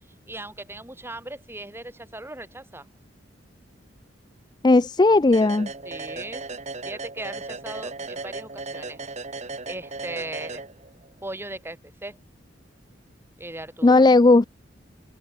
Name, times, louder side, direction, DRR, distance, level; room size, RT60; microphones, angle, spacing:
voice 1, 0.3-2.9 5.8-6.5 6.8-9.0 9.7-10.7 11.2-12.2 13.4-14.1, right 2 dB, 15° right, 2.7 m, -38 dB
voice 2, 4.6-5.7 13.8-14.5, left 2 dB, 25° left, 0.4 m, -16 dB
sound 1, 5.3-11.1, right 3 dB, 40° right, 3.0 m, -36 dB
open air
head